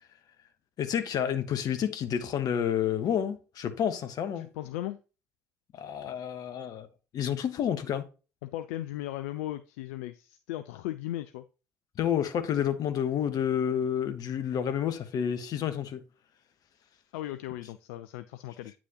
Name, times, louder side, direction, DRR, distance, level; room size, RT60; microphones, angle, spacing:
voice 1, 0.8-4.5 5.7-6.9 7.1-8.1 12.0-16.0, left 9 dB, 50° left, 1.2 m, -29 dB
voice 2, 4.4-5.0 8.4-11.4 17.1-18.7, left 14 dB, 70° left, 0.4 m, -37 dB
9.5 x 6.1 x 3.0 m
figure-of-eight pair, 55°, 8 cm